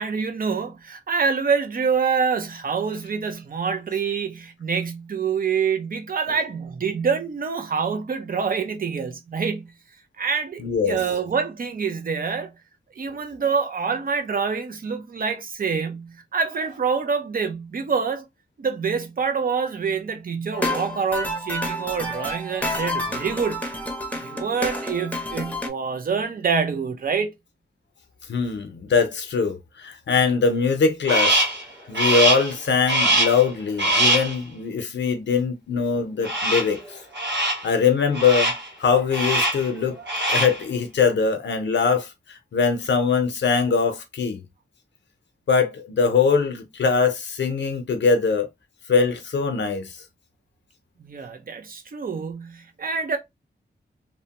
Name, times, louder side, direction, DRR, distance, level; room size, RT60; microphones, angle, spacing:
voice 1, 0.0-9.7 10.2-12.5 13.0-18.3 18.6-23.6 24.1-27.3 51.0-53.2, right 5 dB, 50° right, 0.6 m, -26 dB
voice 2, 10.6-11.0 28.3-31.5 31.9-36.8 37.4-38.5 38.8-40.0 40.3-44.4 45.5-48.5 48.9-49.9, left 5 dB, 90° left, 0.6 m, -22 dB
sound 1, 20.5-25.7, left 1 dB, 10° left, 0.6 m, -29 dB
Crow, 31.1-31.6 31.9-32.5 32.9-33.4 33.8-34.3 36.2-36.8 37.1-37.7 38.1-38.7 39.1-39.7 40.0-40.6, right 1 dB, 75° right, 1.4 m, -22 dB
2.8 x 2.2 x 2.8 m
wide cardioid pair, 120°, 18 cm